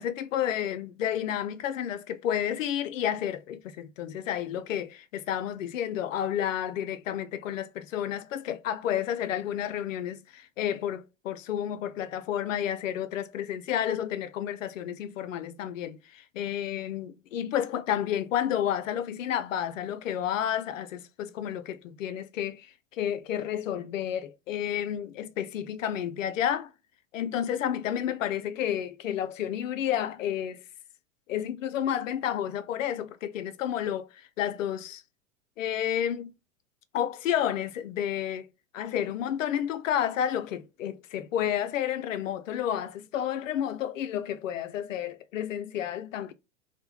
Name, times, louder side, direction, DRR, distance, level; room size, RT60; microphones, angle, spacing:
voice 1, 0.0-26.7 27.1-30.6 31.3-35.0 35.6-36.3 36.9-38.5 38.7-46.3, left 10 dB, 80° left, 0.5 m, -31 dB
3.0 x 2.2 x 2.2 m
hypercardioid pair, 100°, 38 cm